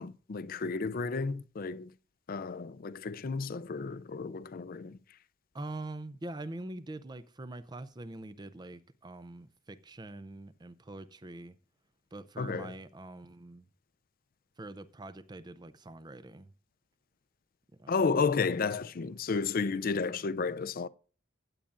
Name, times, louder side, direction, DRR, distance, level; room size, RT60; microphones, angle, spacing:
voice 1, 0.0-1.9 2.3-5.0 12.4-12.7 17.9-20.9, left 4 dB, 45° left, 0.5 m, -32 dB
voice 2, 5.5-11.6 12.1-13.7 14.6-16.5 17.8-17.9, right 2 dB, 20° right, 0.5 m, -44 dB
15.5 x 8.6 x 2.5 m
head